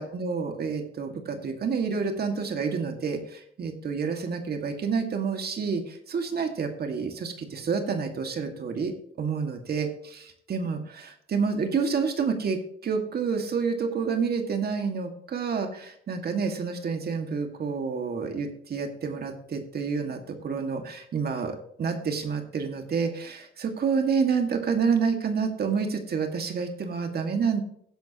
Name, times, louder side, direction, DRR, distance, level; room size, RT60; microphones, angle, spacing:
voice 1, 0.0-27.6, right 5 dB, 50° right, 4 dB, 2.1 m, -29 dB
17.0 x 10.5 x 3.1 m, 0.67 s
cardioid pair, 90°, 20 cm